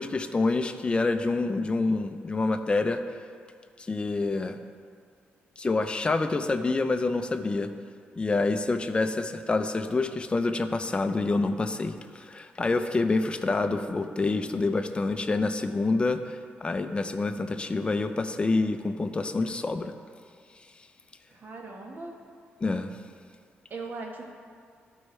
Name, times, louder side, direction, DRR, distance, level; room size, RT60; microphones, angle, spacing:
voice 1, 0.0-3.0 3.9-4.6 5.6-7.7 8.2-19.9 22.6-23.0, left 3 dB, 25° left, 8 dB, 0.5 m, -27 dB
voice 2, 21.3-22.2 23.7-24.3, right 3 dB, 50° right, 1 dB, 1.2 m, -39 dB
12.5 x 4.5 x 3.2 m, 2.1 s
cardioid pair, 85°, 4 cm